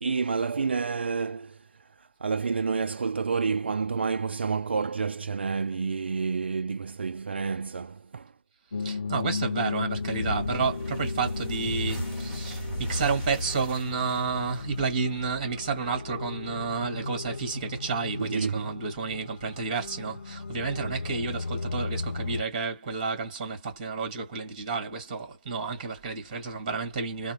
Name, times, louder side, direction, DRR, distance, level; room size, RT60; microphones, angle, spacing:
voice 1, 0.0-8.3 18.2-18.7, right 5 dB, 65° right, 0.3 m, -29 dB
sound 1, 8.7-22.4, left 4 dB, 90° left, 0.4 m, -35 dB
voice 2, 8.8-27.3, right 5 dB, 30° right, 1.9 m, -31 dB
sound 2, 10.1-15.3, equal, 15° left, 1.5 m, -35 dB
3.4 x 2.1 x 2.9 m
figure-of-eight pair, 155°, 6 cm